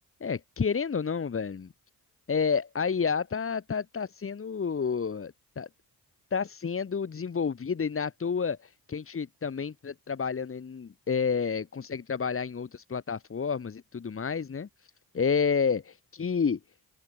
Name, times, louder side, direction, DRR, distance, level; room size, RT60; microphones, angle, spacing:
voice 1, 0.2-1.7 2.3-5.7 6.3-14.7 15.1-16.6, left 6 dB, 35° left, 7.5 m, -30 dB
wide cardioid pair, 155°, 37 cm